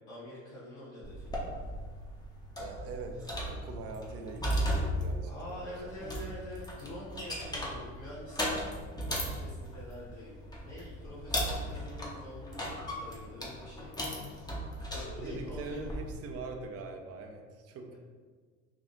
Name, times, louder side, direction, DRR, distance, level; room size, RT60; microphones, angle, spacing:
voice 1, 0.1-1.6 5.2-8.5 9.1-10.4 10.6-14.3 14.9-15.9, left 1 dB, 60° left, -9 dB, 1.2 m, -46 dB
sound 1, 1.0-16.1, equal, 10° left, 0.8 m, -37 dB
voice 2, 2.6-5.7 15.2-18.0, right 3 dB, 35° right, 4 dB, 0.6 m, -43 dB
3.4 x 2.5 x 3.8 m, 1.5 s
hypercardioid pair, 75°, 40 cm